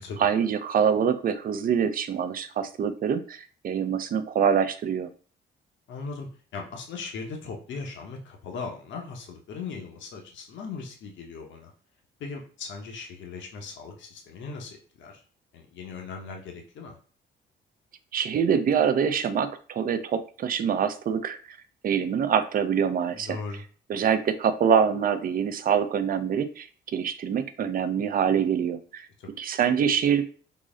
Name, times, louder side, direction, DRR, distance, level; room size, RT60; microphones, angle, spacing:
voice 1, 0.0-5.1 18.1-21.6 21.8-23.4 23.9-29.1 29.4-30.2, right 7 dB, 45° right, 10 dB, 0.4 m, -25 dB
voice 2, 5.9-6.3 6.5-11.7 12.2-15.2 15.5-17.0 23.1-23.6 29.2-29.4, left 4 dB, 70° left, 1 dB, 0.8 m, -38 dB
3.7 x 2.0 x 3.7 m, 0.40 s
cardioid pair, 90°, 20 cm